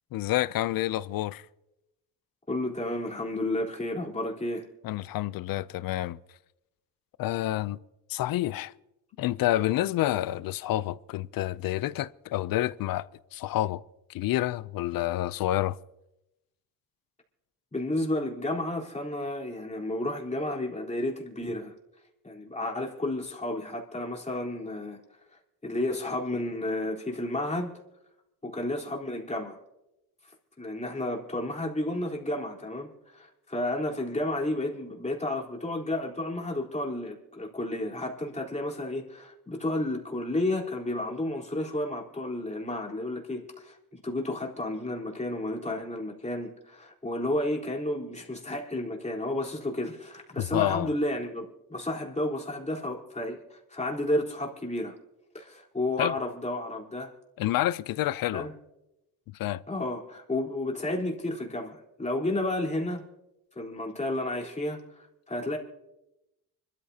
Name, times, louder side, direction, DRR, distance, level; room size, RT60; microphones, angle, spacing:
voice 1, 0.1-1.5 4.8-6.2 7.2-7.8 8.1-8.7 9.2-13.8 14.1-15.8 50.4-50.9 56.0-56.1 57.4-58.5 59.3-59.6, left 15 dB, 80° left, 0.6 m, -28 dB
voice 2, 2.5-4.7 17.7-21.7 22.2-25.0 25.6-27.7 28.4-29.6 30.6-55.0 55.3-57.1 58.3-58.5 59.7-63.0 63.6-65.6, left 1 dB, 20° left, 3.9 m, -32 dB
25.0 x 13.5 x 2.8 m
cardioid pair, 80°, 35 cm